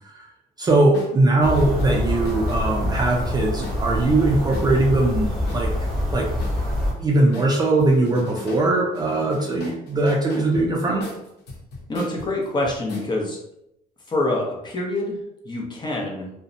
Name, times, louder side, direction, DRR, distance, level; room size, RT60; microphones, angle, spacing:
voice 1, 0.6-5.7 6.1-6.3 6.9-11.1, right 2 dB, 25° right, -1 dB, 0.4 m, -20 dB
sound 1, 0.9-1.1 1.6-4.9 5.5-7.0 7.3-8.7 8.9-13.1, left 2 dB, 80° left, 0.7 m, -39 dB
sound 2, 1.4-6.9, left 1 dB, ahead, 0.9 m, -25 dB
voice 2, 11.9-13.4 14.1-16.3, left 2 dB, 25° left, -2 dB, 0.7 m, -26 dB
2.5 x 2.1 x 2.5 m, 0.80 s
cardioid pair, 110°, 17 cm